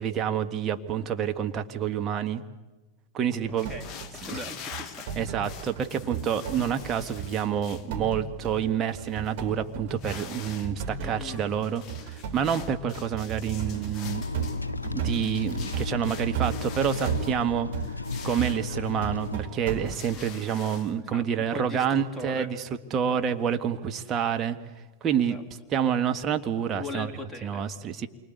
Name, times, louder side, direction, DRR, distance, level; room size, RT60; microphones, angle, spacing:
voice 1, 0.0-2.4 3.1-3.7 4.3-4.4 5.2-14.3 14.9-17.7 18.2-22.6 22.9-24.6 25.0-25.4 25.7-27.1 27.4-28.1, right 8 dB, 25° right, 6 dB, 1.7 m, -28 dB
voice 2, 3.5-5.1 11.0-11.4 21.0-22.5 22.9-23.2 25.1-25.4 26.7-27.6, left 2 dB, ahead, 2 dB, 3.3 m, -40 dB
sound 1, 3.5-5.9 6.1-20.1, right 7 dB, 50° right, 5.3 m, -35 dB
sound 2, 3.6-7.9 8.5-8.6 8.9-9.3 9.9-10.7 11.0-17.4 17.8-19.3 19.7-20.9, left 7 dB, 30° left, 1.7 m, -45 dB
sound 3, 14.0-19.4, left 3 dB, 80° left, 0.8 m, -34 dB
28.0 x 24.5 x 8.2 m, 1.2 s
figure-of-eight pair, 90°, 0 cm